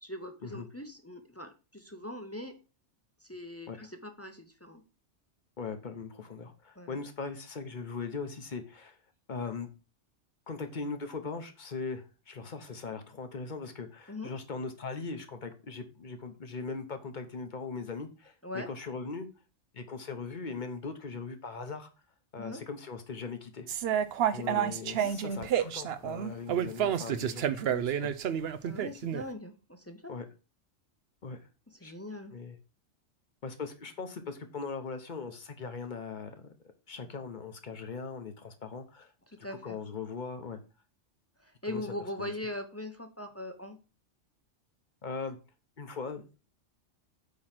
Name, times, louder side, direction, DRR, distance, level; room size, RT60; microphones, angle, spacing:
voice 1, 0.0-2.5 3.2-4.8 6.8-7.0 14.1-14.3 18.4-18.7 22.4-22.6 24.4-25.1 28.6-30.2 31.7-32.3 39.3-39.8 41.4-43.8, left 1 dB, 15° left, 5 dB, 0.6 m, -41 dB
voice 2, 5.6-9.0 9.3-9.7 10.5-19.3 19.7-21.9 22.3-23.7 24.3-28.4 30.1-30.3 31.2-31.4 31.8-31.9 32.3-32.6 33.4-36.5 36.9-39.1 39.4-40.6 41.6-41.8 42.2-42.3 45.0-45.4 45.8-46.4, left 4 dB, 40° left, 8 dB, 1.0 m, -40 dB
sound 1, 23.7-29.2, right 9 dB, 60° right, 0.8 m, -29 dB
8.5 x 3.1 x 5.8 m, 0.32 s
omnidirectional pair, 1.3 m